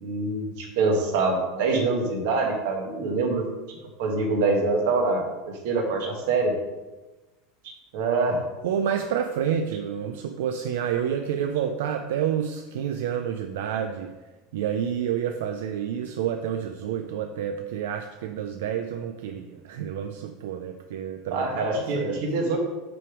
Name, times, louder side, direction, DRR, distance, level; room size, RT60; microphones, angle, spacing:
voice 1, 0.0-6.5 7.9-8.4 21.3-22.6, right 3 dB, 70° right, 1 dB, 1.6 m, -25 dB
voice 2, 8.6-14.1 14.5-22.3, right 8 dB, 90° right, 6 dB, 0.5 m, -29 dB
5.9 x 5.3 x 4.7 m, 1.1 s
supercardioid pair, 165°, 0 cm